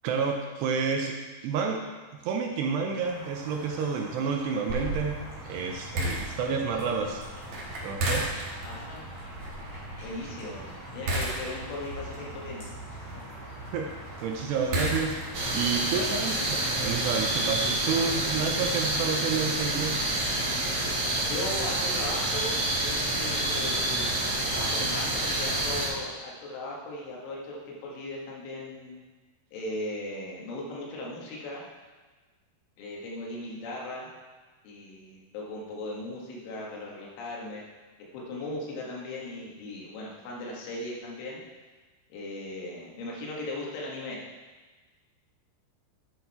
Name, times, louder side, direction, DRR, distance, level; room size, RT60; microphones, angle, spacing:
voice 1, 0.0-1.8 2.2-5.2 5.5-7.2 7.8-8.3 13.7-13.9 14.2-15.2 15.5-20.1, right 5 dB, 75° right, 2 dB, 2.7 m, -29 dB
sound 1, 3.0-16.3, equal, 25° left, 4.1 m, -46 dB
sound 2, 4.7-15.6, right 1 dB, 50° right, 2.3 m, -35 dB
voice 2, 8.6-9.0 10.0-10.6 10.9-12.6 21.2-22.5 22.8-24.1 24.5-29.0 29.5-31.6 32.8-34.1 34.6-37.6 38.1-41.4 42.1-44.2, left 1 dB, 85° left, -3 dB, 4.4 m, -38 dB
sound 3, 15.3-25.9, right 1 dB, 35° right, 3.0 m, -28 dB
11.0 x 8.5 x 4.4 m, 1.3 s
omnidirectional pair, 5.4 m